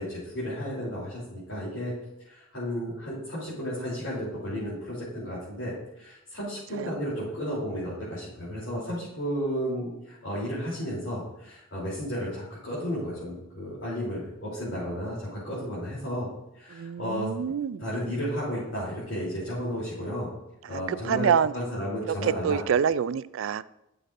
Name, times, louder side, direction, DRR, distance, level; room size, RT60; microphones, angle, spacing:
voice 1, 0.0-1.9 2.2-16.3 16.5-17.3 17.8-20.3 20.7-22.6, equal, 65° left, -10 dB, 3.3 m, -33 dB
voice 2, 16.7-17.9 20.7-21.5 22.1-23.6, right 7 dB, 65° right, 17 dB, 0.3 m, -26 dB
12.5 x 6.7 x 2.6 m, 0.87 s
head